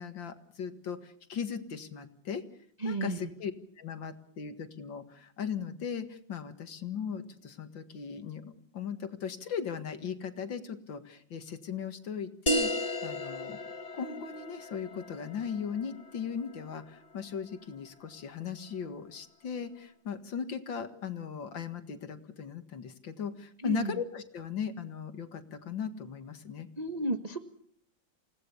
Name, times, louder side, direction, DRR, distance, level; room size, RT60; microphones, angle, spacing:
voice 1, 0.0-2.4 2.8-3.5 3.8-13.6 13.9-26.7, left 7 dB, 70° left, 9 dB, 2.5 m, -38 dB
voice 2, 2.8-3.3 23.6-23.9 26.8-27.4, right 1 dB, 25° right, 5 dB, 1.3 m, -32 dB
sound 1, 12.5-17.5, equal, 20° left, 1.3 m, -35 dB
28.5 x 18.0 x 7.1 m, 0.63 s
omnidirectional pair, 2.1 m